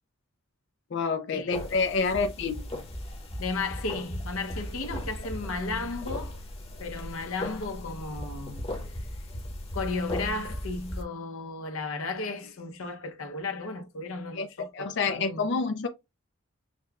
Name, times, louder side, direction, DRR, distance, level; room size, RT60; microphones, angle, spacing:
voice 1, 0.9-2.7 14.3-14.5 14.7-15.9, left 4 dB, 55° left, 0.4 m, -28 dB
sound 1, 1.5-11.0, left 1 dB, 25° left, 0.9 m, -37 dB
voice 2, 3.4-6.4 6.8-8.6 9.7-15.5, left 3 dB, 75° left, 0.8 m, -34 dB
6.3 x 2.2 x 2.3 m
head